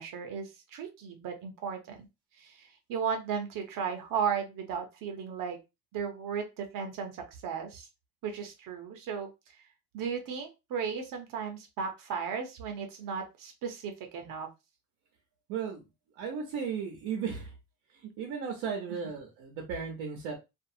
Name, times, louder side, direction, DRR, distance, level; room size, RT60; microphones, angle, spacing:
voice 1, 0.0-2.1 2.4-5.6 5.9-7.9 8.2-9.3 9.9-14.5, right 6 dB, 60° right, 5 dB, 0.9 m, -35 dB
voice 2, 15.5-15.8 16.2-17.5 18.2-20.4, right 6 dB, 90° right, 0 dB, 0.9 m, -35 dB
2.6 x 2.3 x 2.7 m, 0.24 s
cardioid pair, 115°, 37 cm